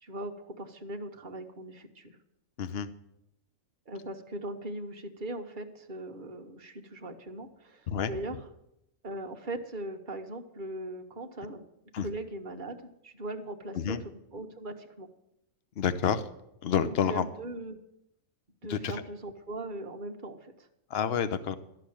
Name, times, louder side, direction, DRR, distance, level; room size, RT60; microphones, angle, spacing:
voice 1, 0.0-2.2 3.9-8.4 9.0-11.6 12.0-15.1 16.9-17.8 18.6-20.7, right 1 dB, 40° right, 4 dB, 1.2 m, -40 dB
voice 2, 2.6-2.9 7.9-8.1 11.9-12.1 13.7-14.0 15.8-16.3 16.6-17.2 18.7-19.0 20.9-21.6, left 8 dB, 50° left, 12 dB, 0.9 m, -29 dB
13.0 x 6.1 x 8.7 m, 0.81 s
omnidirectional pair, 1.5 m